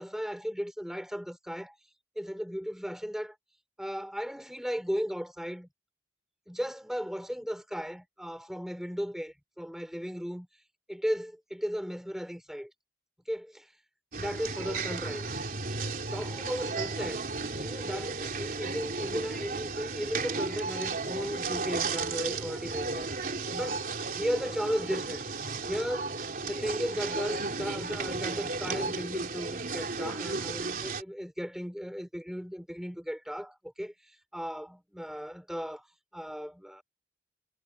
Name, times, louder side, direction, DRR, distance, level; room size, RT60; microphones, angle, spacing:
voice 1, 0.0-1.7 2.1-3.3 3.8-5.7 6.5-10.5 10.9-12.7 13.3-13.7 14.1-15.3 16.1-17.2 17.6-23.1 23.5-25.2 25.6-26.1 26.4-33.9 34.3-35.9 36.1-36.8, equal, 5° right, 4.9 m, -36 dB
sound 1, 14.1-31.0, right 3 dB, 50° right, 3.4 m, -34 dB
head